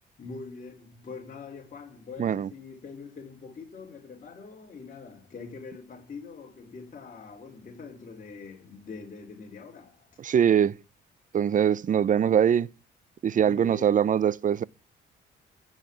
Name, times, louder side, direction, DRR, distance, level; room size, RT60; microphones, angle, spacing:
voice 1, 0.2-10.2 13.4-13.9, left 4 dB, 40° left, 4.5 m, -44 dB
voice 2, 2.2-2.5 10.2-10.8 11.3-12.7 13.2-14.6, right 8 dB, 40° right, 0.6 m, -22 dB
15.0 x 5.8 x 8.6 m
cardioid pair, 90°, 20 cm